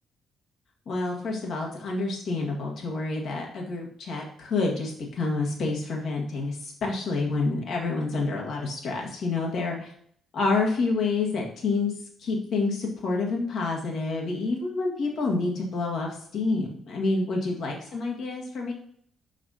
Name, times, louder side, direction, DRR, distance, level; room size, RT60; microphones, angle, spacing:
voice 1, 0.8-9.9 10.3-11.9 12.2-18.7, left 3 dB, 60° left, 0 dB, 1.6 m, -28 dB
6.0 x 6.0 x 2.8 m, 0.63 s
figure-of-eight pair, 45°, 0 cm